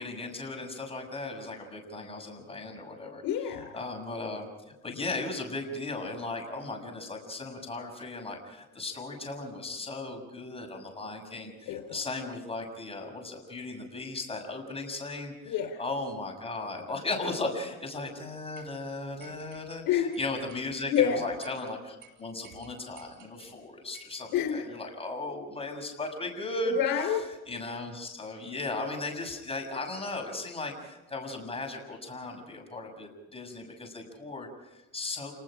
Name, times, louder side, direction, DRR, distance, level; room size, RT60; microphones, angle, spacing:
voice 1, 0.0-3.2 3.7-26.8 27.5-35.3, left 2 dB, 15° left, 2 dB, 6.6 m, -37 dB
voice 2, 3.2-3.7 11.7-12.0 15.5-15.8 19.9-20.1 20.9-21.3 24.3-24.7 26.7-27.3, left 9 dB, 70° left, 4 dB, 3.9 m, -28 dB
sound 1, 18.6-18.7 19.2-19.8 20.1-20.6 20.9-21.1 21.4-21.6 22.0-22.1 22.4-23.5 23.9-24.2, right 7 dB, 65° right, 5.3 m, -53 dB
29.0 x 20.0 x 5.0 m, 1.1 s
supercardioid pair, 90°, 36 cm